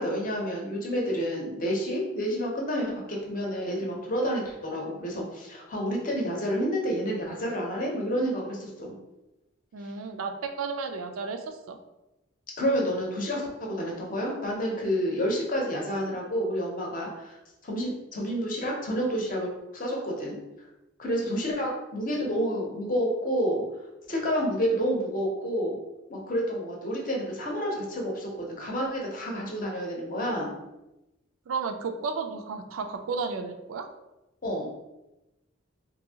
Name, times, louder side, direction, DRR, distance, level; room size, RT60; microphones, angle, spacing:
voice 1, 0.0-8.9 12.6-17.4 17.6-20.4 21.0-23.6 24.1-25.8 26.1-30.5 34.4-34.7, equal, 40° left, -1 dB, 0.7 m, -29 dB
voice 2, 9.7-11.8 31.5-33.9, right 4 dB, 85° right, 6 dB, 0.4 m, -33 dB
2.7 x 2.6 x 2.8 m, 0.97 s
head